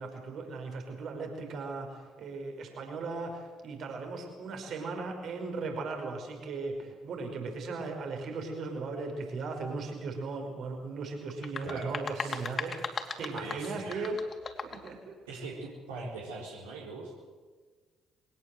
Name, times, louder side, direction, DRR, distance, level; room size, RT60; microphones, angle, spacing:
voice 1, 0.0-12.8 13.2-14.2 14.6-15.1, right 3 dB, 60° right, 4 dB, 5.3 m, -37 dB
sound 1, 11.3-14.9, left 5 dB, 40° left, 2.9 m, -38 dB
voice 2, 11.6-12.4 13.3-14.1 15.3-17.2, right 3 dB, 80° right, -4 dB, 4.2 m, -41 dB
22.5 x 18.5 x 7.8 m, 1.4 s
figure-of-eight pair, 45°, 0 cm